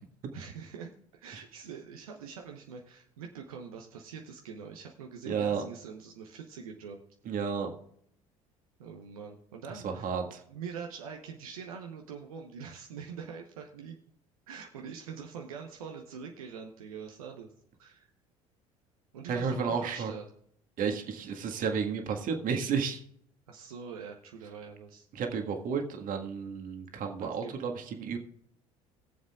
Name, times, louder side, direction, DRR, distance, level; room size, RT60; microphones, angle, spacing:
voice 1, 0.3-7.0 8.8-10.1 10.5-14.0 14.5-17.5 17.8-18.1 19.1-20.2 23.5-25.1 27.2-27.5, right 6 dB, 80° right, 2 dB, 1.0 m, -44 dB
voice 2, 5.2-5.6 7.2-7.7 9.8-10.4 19.3-20.1 20.8-23.0 25.1-28.2, right 6 dB, 50° right, 4 dB, 1.7 m, -32 dB
21.0 x 7.4 x 2.4 m, 0.67 s
hypercardioid pair, 65°, 18 cm